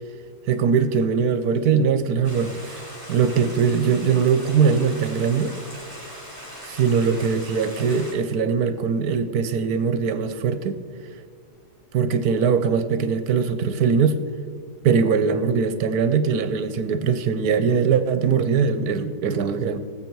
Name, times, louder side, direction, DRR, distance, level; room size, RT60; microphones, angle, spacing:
voice 1, 0.5-2.8 3.1-5.5 6.6-10.8 11.9-14.2 14.8-19.8, right 6 dB, 70° right, 11 dB, 1.2 m, -21 dB
Stream, 2.2-8.1, equal, 10° left, 3.4 m, -40 dB
18.0 x 7.8 x 4.6 m, 2.3 s
omnidirectional pair, 1.8 m